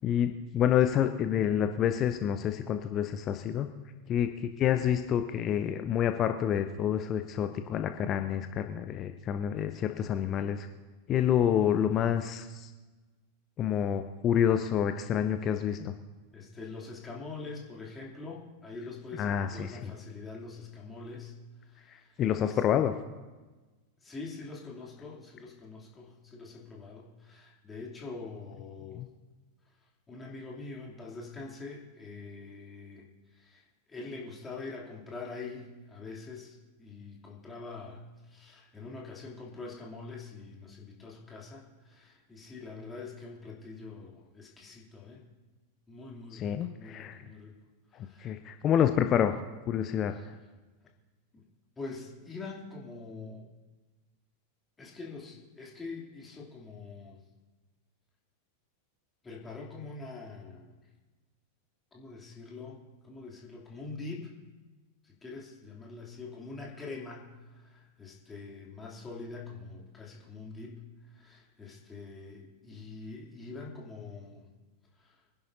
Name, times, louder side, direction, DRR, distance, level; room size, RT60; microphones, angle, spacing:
voice 1, 0.0-3.7 4.1-10.7 11.1-12.7 13.6-15.9 19.2-19.9 22.2-22.9 29.0-29.1 46.3-47.2 48.2-49.3 49.7-50.1, left 9 dB, 30° left, 8 dB, 0.7 m, -28 dB
voice 2, 16.3-21.3 21.6-22.6 24.0-29.0 30.1-33.0 33.3-33.6 33.9-45.2 45.9-47.6 48.0-48.3 50.1-50.3 51.3-51.4 51.8-53.5 54.8-57.2 59.2-60.7 61.9-64.3 65.0-70.8 71.1-74.5 75.0-75.2, left 3 dB, 15° left, -3 dB, 2.9 m, -44 dB
24.5 x 11.0 x 2.7 m, 1.2 s
figure-of-eight pair, 90°, 0 cm